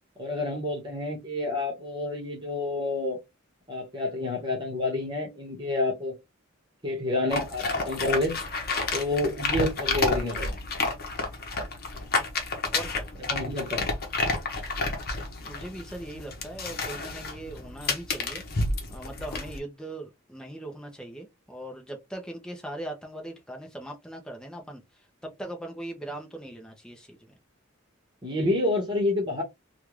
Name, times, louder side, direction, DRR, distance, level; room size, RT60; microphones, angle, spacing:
voice 1, 0.2-3.2 3.7-6.1 6.8-8.3 8.9-10.6 13.3-13.9 28.2-29.4, left 2 dB, 25° right, 1.3 m, -29 dB
sound 1, 7.3-19.6, left 3 dB, 50° left, 0.9 m, -30 dB
voice 2, 12.7-13.1 15.4-18.4 18.9-24.8 25.2-27.2, right 1 dB, 5° left, 0.7 m, -40 dB
3.4 x 2.4 x 3.1 m
head